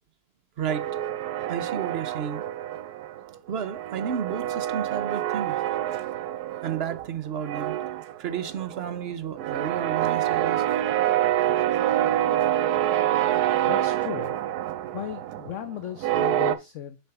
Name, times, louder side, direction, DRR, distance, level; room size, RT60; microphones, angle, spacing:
voice 1, 0.6-0.9 1.5-2.4 3.5-5.6 6.6-7.7 8.2-10.6, right 8 dB, 60° right, 0.7 m, -32 dB
sound 1, 0.7-3.2 3.5-7.1 7.4-16.6, right 12 dB, 80° right, 1.2 m, -27 dB
voice 2, 13.6-14.3 14.9-17.0, left 11 dB, 65° left, 0.8 m, -36 dB
6.8 x 3.2 x 5.8 m
omnidirectional pair, 1.6 m